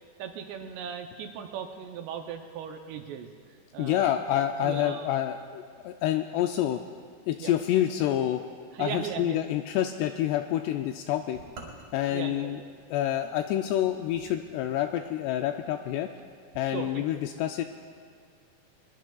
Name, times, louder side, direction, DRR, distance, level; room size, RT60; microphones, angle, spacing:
voice 1, 0.2-4.2 4.6-5.1 7.4-7.5 8.7-9.4 12.1-12.7 16.7-17.0, right 8 dB, 80° right, 5 dB, 2.8 m, -38 dB
voice 2, 3.8-6.8 7.3-8.4 8.8-11.4 11.9-12.6 12.9-16.1 16.6-17.7, left 12 dB, 85° left, 5 dB, 2.5 m, -28 dB
sound 1, 11.3-15.1, right 3 dB, 55° right, 3.9 m, -51 dB
22.0 x 21.5 x 2.4 m, 2.1 s
omnidirectional pair, 5.1 m